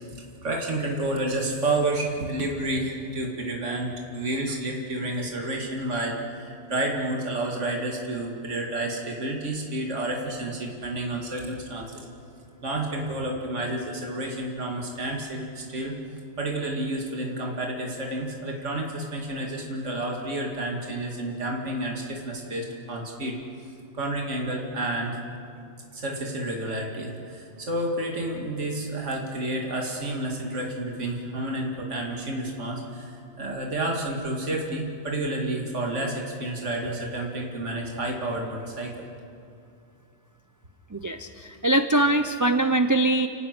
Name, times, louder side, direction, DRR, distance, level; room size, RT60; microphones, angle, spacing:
voice 1, 0.4-12.1 12.6-16.0 16.4-23.4 23.9-25.2 25.9-39.1, right 1 dB, 70° right, 0 dB, 2.6 m, -30 dB
voice 2, 40.9-43.3, right 1 dB, 20° right, 8 dB, 0.5 m, -22 dB
29.5 x 18.0 x 6.1 m, 2.5 s
omnidirectional pair, 1.3 m